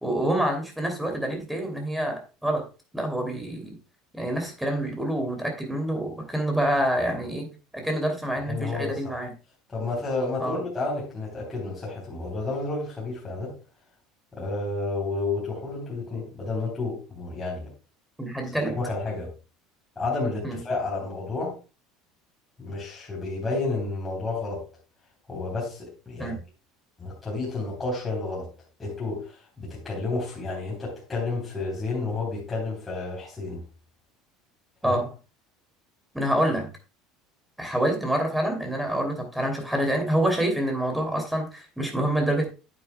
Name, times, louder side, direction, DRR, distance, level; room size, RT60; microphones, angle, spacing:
voice 1, 0.0-2.6 2.9-3.8 4.1-7.5 7.7-9.3 10.4-10.6 18.2-18.8 20.4-20.6 26.2-26.3 34.8-35.1 36.1-36.7 37.6-42.5, right 1 dB, 5° right, 2.8 m, -27 dB
voice 2, 8.5-9.2 9.7-13.6 14.3-17.7 18.8-19.3 20.0-21.6 22.6-24.7 25.3-26.4 27.0-28.5 28.8-33.6 34.8-35.0, left 3 dB, 15° left, 3.5 m, -31 dB
9.3 x 9.3 x 2.2 m
supercardioid pair, 130°, 0 cm